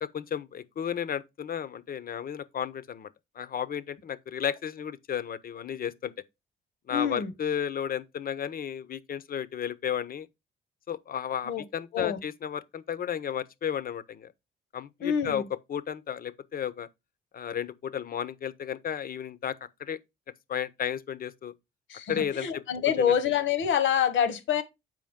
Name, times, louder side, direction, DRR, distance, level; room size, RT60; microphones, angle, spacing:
voice 1, 0.0-3.1 3.4-6.1 6.9-10.3 10.9-14.3 14.7-15.4 15.7-16.9 17.3-20.0 20.5-21.5 22.1-23.1, left 8 dB, 50° left, 0.7 m, -33 dB
voice 2, 6.9-7.3 11.4-11.6 11.9-12.2 15.0-15.4 21.9-24.6, left 8 dB, 75° left, 1.2 m, -26 dB
7.7 x 4.9 x 3.6 m
cardioid pair, 90°, 20 cm